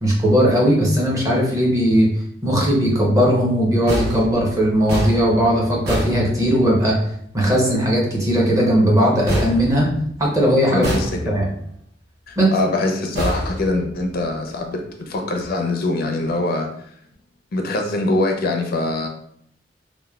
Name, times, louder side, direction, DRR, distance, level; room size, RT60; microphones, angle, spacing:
voice 1, 0.0-2.1 2.4-7.0 7.3-9.9 10.2-10.9 11.3-11.4 12.4-12.5, equal, 20° right, -3 dB, 0.6 m, -18 dB
sound 1, 3.9-6.9 9.3-10.3 10.8-11.6 13.1-14.2, equal, 60° right, 0.7 m, -27 dB
voice 2, 10.7-11.3 12.3-16.7 17.5-19.1, left 2 dB, 55° left, 2 dB, 0.4 m, -23 dB
2.9 x 2.1 x 2.2 m, 0.70 s
head